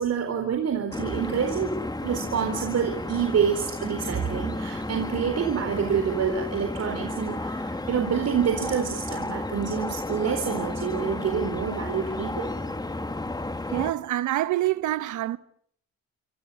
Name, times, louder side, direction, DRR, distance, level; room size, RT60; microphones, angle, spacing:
voice 1, 0.0-1.8 2.0-12.5, right 7 dB, 55° right, 4.1 m, -27 dB
sound 1, 0.9-13.9, left 2 dB, 15° left, 2.1 m, -33 dB
voice 2, 13.7-15.4, right 14 dB, 75° right, 1.2 m, -26 dB
27.5 x 26.0 x 7.0 m
cardioid pair, 90°, 30 cm